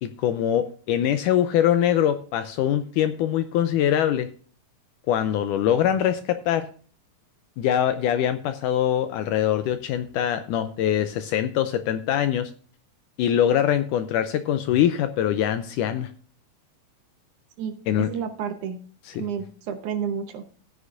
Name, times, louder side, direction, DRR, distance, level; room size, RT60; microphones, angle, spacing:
voice 1, 0.0-4.3 5.1-6.7 7.6-12.5 13.2-16.1 17.9-18.1 19.2-19.3, left 10 dB, 80° left, 10 dB, 1.9 m, -23 dB
voice 2, 17.6-18.8 19.2-20.5, right 7 dB, 70° right, 7 dB, 2.1 m, -31 dB
14.5 x 9.5 x 2.6 m, 0.43 s
omnidirectional pair, 4.1 m